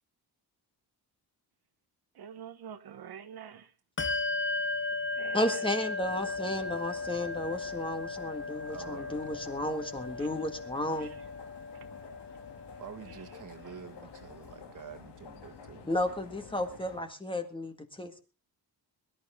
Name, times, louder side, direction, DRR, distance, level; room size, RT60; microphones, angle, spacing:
voice 1, 2.2-3.7 5.1-5.4 11.0-11.1, right 8 dB, 65° right, 1.3 m, -45 dB
Bell, 4.0-14.0, left 3 dB, 30° left, 0.9 m, -36 dB
voice 2, 5.3-11.1 15.9-18.2, left 1 dB, 10° left, 1.8 m, -33 dB
sound 1, 6.0-17.0, left 6 dB, 90° left, 2.8 m, -50 dB
voice 3, 8.7-9.3 12.8-15.9, right 7 dB, 50° right, 1.9 m, -47 dB
22.5 x 12.0 x 3.7 m
wide cardioid pair, 160°, 41 cm